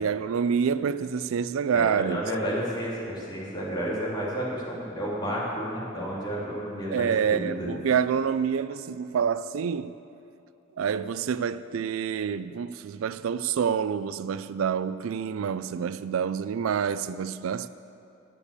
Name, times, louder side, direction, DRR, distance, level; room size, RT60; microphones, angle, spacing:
voice 1, 0.0-2.2 6.9-9.9 10.8-17.7, right 7 dB, 90° right, 0.4 m, -27 dB
voice 2, 1.7-7.8, equal, 20° left, 2.9 m, -31 dB
9.9 x 8.3 x 8.3 m
head